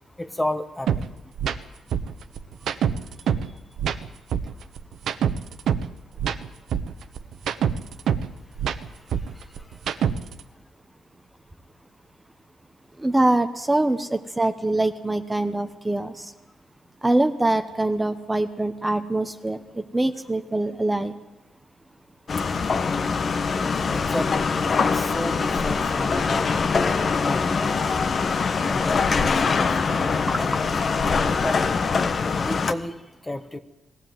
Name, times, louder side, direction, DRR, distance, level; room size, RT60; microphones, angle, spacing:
voice 1, 0.2-1.2 9.1-9.8 23.9-24.5 24.8-26.6 27.2-27.9 28.7-30.1 30.4-30.7 31.4-31.7 32.4-33.6, left 1 dB, 10° left, 10 dB, 1.1 m, -32 dB
sound 1, 0.9-1.0 1.4-1.6 1.9-3.5 3.8-5.9 6.2-8.3 8.6-10.4, right 8 dB, 70° right, 1.1 m, -25 dB
voice 2, 13.0-16.3 17.0-21.1 30.3-30.4, right 2 dB, 10° right, 9 dB, 1.0 m, -24 dB
sound 2, 22.3-32.7, left 5 dB, 35° left, 1.1 m, -23 dB
20.5 x 15.5 x 9.3 m, 1.0 s
cardioid pair, 140°, 0 cm